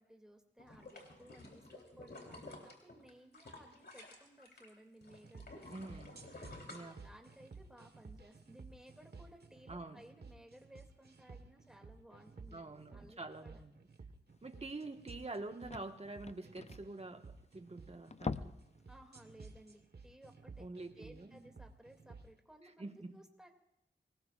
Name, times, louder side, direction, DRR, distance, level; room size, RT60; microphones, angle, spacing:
voice 1, 0.0-5.7 6.7-13.6 14.6-14.7 18.9-20.7 21.0-23.5, right 1 dB, 5° right, 3 dB, 2.6 m, -59 dB
sound 1, 0.6-4.7 5.0-7.5 8.0-8.1, left 2 dB, 60° left, 3.8 m, -52 dB
sound 2, 5.1-22.3, right 4 dB, 60° right, 1.5 m, -55 dB
voice 2, 5.7-6.2 6.7-7.0 9.7-10.0 12.5-13.7 14.4-18.6 20.6-21.4 22.8-23.1, right 2 dB, 35° right, 5 dB, 1.5 m, -46 dB
sound 3, 14.6-14.7 15.0-15.1 15.3-17.6 18.0-18.8 19.1-19.3 19.7-19.8, left 4 dB, 35° left, 0.6 m, -43 dB
24.5 x 20.0 x 2.5 m, 0.82 s
cardioid pair, 55°, 19 cm